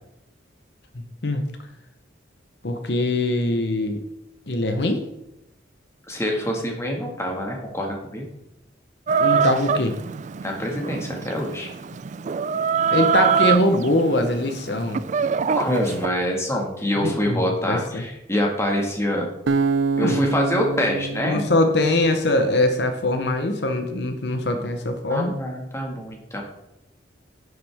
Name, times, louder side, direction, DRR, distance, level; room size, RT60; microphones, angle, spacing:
voice 1, 2.6-4.0 4.5-5.0 9.2-10.0 12.9-15.0 17.0-18.0 20.0-20.2 21.2-25.3, left 1 dB, 60° left, 6 dB, 0.9 m, -22 dB
voice 2, 6.1-8.2 10.4-11.7 15.5-19.3 20.0-21.5 25.1-26.4, equal, 15° left, 0 dB, 1.8 m, -25 dB
Chicken rooster, 9.1-16.1, right 7 dB, 40° right, 0.3 m, -24 dB
Acoustic guitar, 19.5-22.7, right 4 dB, 85° right, 0.7 m, -26 dB
11.0 x 7.7 x 3.5 m, 0.88 s
head